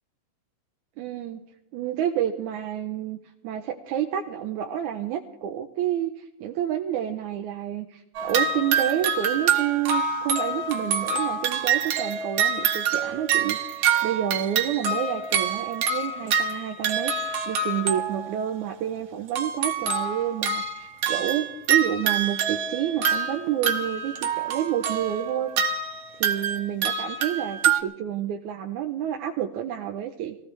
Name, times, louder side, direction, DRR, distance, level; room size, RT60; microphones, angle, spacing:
voice 1, 1.0-1.4 1.7-3.2 3.4-25.5 26.1-30.4, right 10 dB, 80° right, 3 dB, 2.2 m, -29 dB
sound 1, 8.1-18.4 19.3-27.8, right 6 dB, 60° right, 2.0 m, -26 dB
23.0 x 16.0 x 3.4 m, 0.84 s
omnidirectional pair, 3.6 m